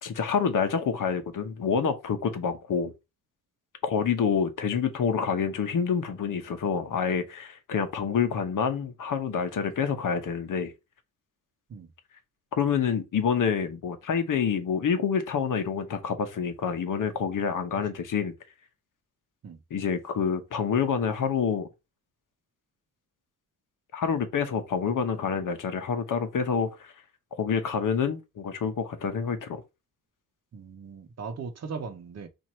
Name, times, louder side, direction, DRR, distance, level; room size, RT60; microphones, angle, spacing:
voice 1, 0.0-2.9 3.8-10.7 12.5-18.3 19.7-21.7 23.9-26.9 27.3-29.6, left 6 dB, 60° left, 1.0 m, -27 dB
voice 2, 30.5-32.3, right 5 dB, 45° right, 0.8 m, -38 dB
4.5 x 2.6 x 4.4 m
wide cardioid pair, 145°, 36 cm